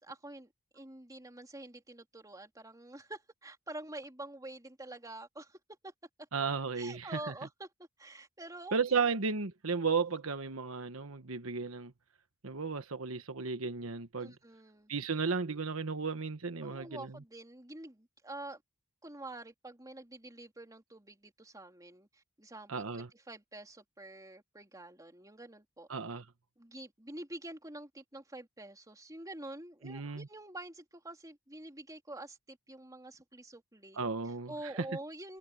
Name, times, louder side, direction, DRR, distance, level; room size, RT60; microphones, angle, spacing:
voice 1, 0.0-5.9 6.7-7.7 8.0-9.0 14.2-14.9 16.6-18.6 19.0-25.9 26.6-34.0 34.5-35.4, right 1 dB, 15° right, 3.4 m, -47 dB
voice 2, 6.3-7.3 8.7-11.9 12.4-14.3 14.9-17.2 22.7-23.1 25.9-26.2 29.8-30.3 33.9-34.9, right 5 dB, 75° right, 1.2 m, -34 dB
head